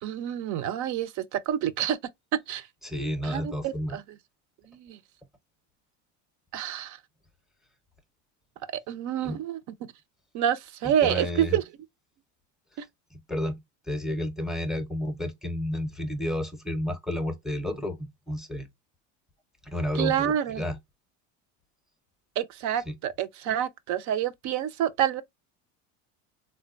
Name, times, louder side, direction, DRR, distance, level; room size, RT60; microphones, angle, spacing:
voice 1, 0.0-2.0 2.5-2.7 3.2-4.0 4.7-5.0 6.5-7.0 8.9-9.6 10.3-11.6 12.8-12.9 19.9-20.6 22.4-25.2, right 10 dB, 50° right, 0.6 m, -28 dB
voice 2, 2.8-4.0 9.2-9.4 10.8-11.6 13.1-18.7 19.6-20.8 22.9-23.0, left 1 dB, ahead, 0.6 m, -31 dB
3.7 x 2.2 x 2.4 m
supercardioid pair, 105°, 38 cm